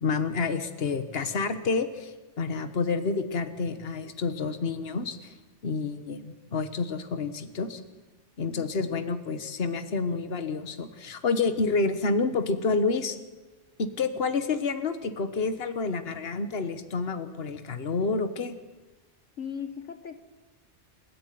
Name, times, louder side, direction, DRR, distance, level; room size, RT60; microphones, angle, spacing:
voice 1, 0.0-5.3 5.6-7.8 8.4-13.2 13.8-18.6, left 4 dB, 55° left, 10 dB, 1.5 m, -29 dB
voice 2, 19.4-20.2, left 7 dB, 75° left, 10 dB, 1.5 m, -37 dB
28.5 x 13.0 x 9.4 m, 1.2 s
omnidirectional pair, 1.2 m